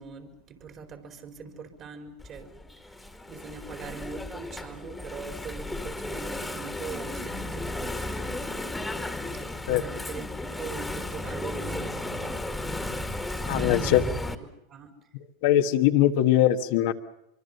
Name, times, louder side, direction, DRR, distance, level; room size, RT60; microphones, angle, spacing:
voice 1, 0.0-2.6 3.0-8.4 9.3-10.3 10.5-12.6 13.4-14.0 14.4-14.9, right 5 dB, 40° right, 5 dB, 4.5 m, -42 dB
Engine / Mechanisms, 2.2-14.3, left 2 dB, 5° left, 2.1 m, -34 dB
voice 2, 13.5-14.0 15.4-16.9, left 12 dB, 65° left, 6 dB, 1.5 m, -21 dB
24.5 x 24.0 x 6.8 m, 0.81 s
hypercardioid pair, 95°, 0 cm